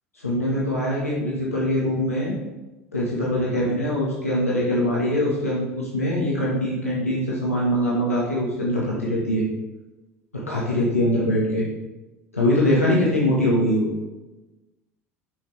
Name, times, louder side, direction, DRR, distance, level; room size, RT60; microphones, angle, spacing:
voice 1, 0.1-2.3 2.9-9.4 10.3-11.7 12.3-13.9, left 1 dB, 85° left, -6 dB, 1.7 m, -23 dB
9.7 x 6.1 x 3.5 m, 1.1 s
figure-of-eight pair, 70°, 8 cm